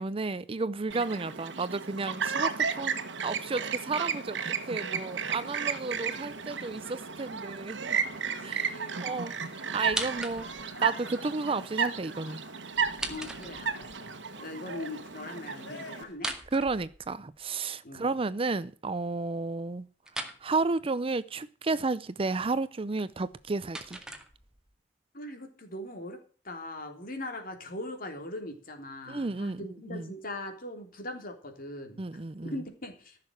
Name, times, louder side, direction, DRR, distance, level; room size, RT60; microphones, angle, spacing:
voice 1, 0.0-8.0 8.4-10.5 10.8-12.4 16.5-19.9 20.2-24.0 29.1-30.1 32.0-32.5, right 3 dB, 30° right, 0.6 m, -32 dB
Chirp tweet, 0.9-16.0, right 6 dB, 75° right, 1.3 m, -34 dB
sound 1, 4.8-16.2, left 3 dB, 75° left, 2.6 m, -53 dB
voice 2, 8.2-9.3 13.1-16.3 17.8-18.1 25.1-32.0 32.4-33.2, left 1 dB, 50° left, 3.3 m, -41 dB
sound 2, 9.8-10.8 12.7-14.0 16.1-17.4 20.0-20.4 23.1-24.7, right 1 dB, 5° right, 2.0 m, -39 dB
15.0 x 6.8 x 9.1 m
head